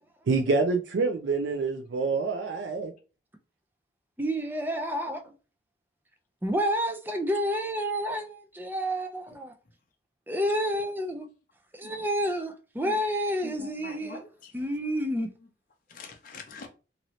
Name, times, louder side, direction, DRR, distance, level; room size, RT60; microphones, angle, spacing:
voice 1, 0.3-2.9, right 4 dB, 75° right, 0.4 m, -26 dB
voice 2, 4.2-5.3 6.4-9.5 10.3-11.3 11.7-14.2 14.5-15.3, equal, 10° right, 0.4 m, -29 dB
voice 3, 11.8-12.1 12.8-13.0 13.4-14.5 15.9-16.7, left 3 dB, 50° left, 0.6 m, -45 dB
2.7 x 2.6 x 3.0 m
head